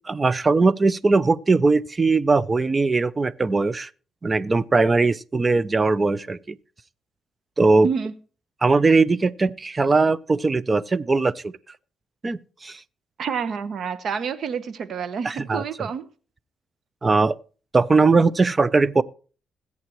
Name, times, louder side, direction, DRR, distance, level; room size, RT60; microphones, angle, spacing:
voice 1, 0.1-3.9 4.2-6.6 7.6-7.9 8.6-11.5 12.2-12.8 15.2-15.6 17.0-17.3 17.7-19.0, right 3 dB, 25° right, 0.5 m, -20 dB
voice 2, 13.2-16.0, right 6 dB, 60° right, 0.9 m, -28 dB
21.0 x 8.4 x 3.1 m
cardioid pair, 90°, 0 cm